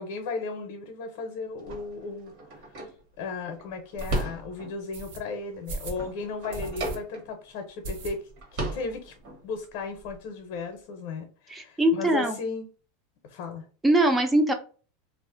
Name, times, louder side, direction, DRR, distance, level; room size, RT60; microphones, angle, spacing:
voice 1, 0.0-2.3 3.2-8.3 8.7-9.1 9.4-12.6 13.2-13.6, left 4 dB, 50° left, 5 dB, 0.6 m, -35 dB
sound 1, 1.6-4.9 5.3-7.6 7.9-8.0 8.3-9.4, right 1 dB, 50° right, 1.2 m, -36 dB
sound 2, 2.6-2.7 3.1-3.2 4.0-4.2 4.9-5.2 5.7-6.0 6.5-7.0 7.3-7.4 7.8-8.5 8.8-8.9 9.2-9.3 9.5-10.2, right 2 dB, 70° right, 0.8 m, -37 dB
voice 2, 11.5-12.4 13.8-14.5, right 1 dB, 10° right, 5 dB, 0.4 m, -22 dB
2.4 x 2.1 x 3.6 m, 0.38 s
supercardioid pair, 155°, 0 cm